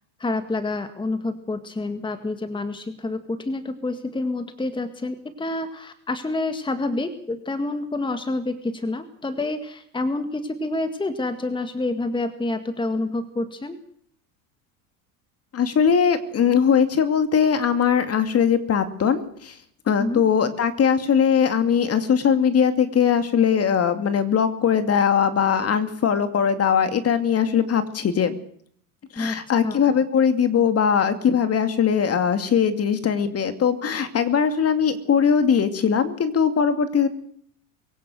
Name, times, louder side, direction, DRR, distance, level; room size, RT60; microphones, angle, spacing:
voice 1, 0.2-13.8 20.0-20.2 29.2-29.8, left 2 dB, 10° left, 9 dB, 1.9 m, -28 dB
voice 2, 15.5-19.5 19.9-28.4 29.1-37.1, left 7 dB, 35° left, 10 dB, 2.5 m, -20 dB
23.5 x 16.5 x 7.9 m, 0.64 s
supercardioid pair, 100°, 44 cm